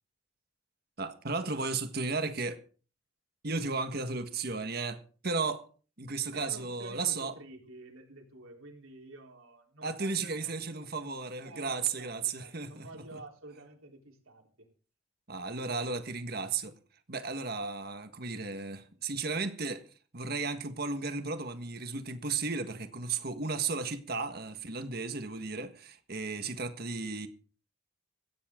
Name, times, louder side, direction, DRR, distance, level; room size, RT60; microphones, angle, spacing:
voice 1, 1.0-2.6 3.4-5.6 6.0-7.3 9.8-12.9 15.3-16.7 17.1-19.8 20.1-27.3, right 4 dB, 50° right, 1.6 m, -34 dB
voice 2, 6.3-10.9 11.4-14.7, right 2 dB, 90° right, 3.9 m, -50 dB
17.0 x 15.5 x 3.8 m
head